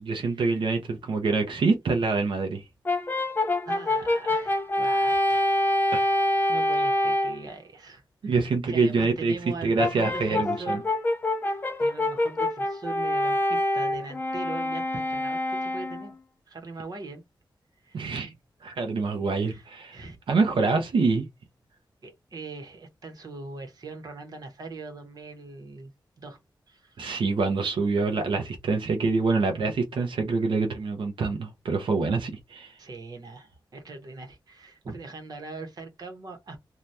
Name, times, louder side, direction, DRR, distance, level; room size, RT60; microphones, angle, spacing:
voice 1, 0.0-2.6 5.9-6.0 8.2-9.3 9.6-10.8 17.9-18.3 18.6-20.0 20.3-21.3 27.0-32.7, right 4 dB, 90° right, 0.6 m, -26 dB
Brass instrument, 2.9-7.4 9.8-16.1, left 1 dB, 25° left, 0.4 m, -26 dB
voice 2, 3.6-5.5 5.8-6.2 6.5-10.9 11.8-16.1 16.5-17.2 17.8-18.1 19.4-19.7 19.9-20.2 22.0-25.9 26.2-26.4 26.7-27.2 32.8-36.6, right 3 dB, 50° right, 0.9 m, -41 dB
2.7 x 2.3 x 3.2 m
wide cardioid pair, 165°, 8 cm